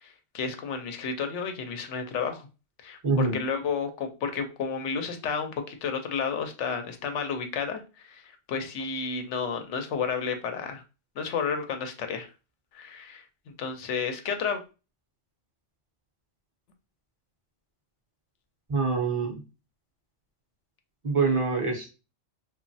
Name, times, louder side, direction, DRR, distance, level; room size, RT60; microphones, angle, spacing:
voice 1, 0.0-2.4 2.8-8.2 8.5-10.8 11.2-12.3 12.7-13.2 13.6-14.6, left 6 dB, 90° left, 6 dB, 0.9 m, -31 dB
voice 2, 3.0-3.4 18.7-19.4 21.0-21.9, right 4 dB, 40° right, 2 dB, 0.5 m, -25 dB
2.9 x 2.3 x 2.6 m, 0.30 s
omnidirectional pair, 1.2 m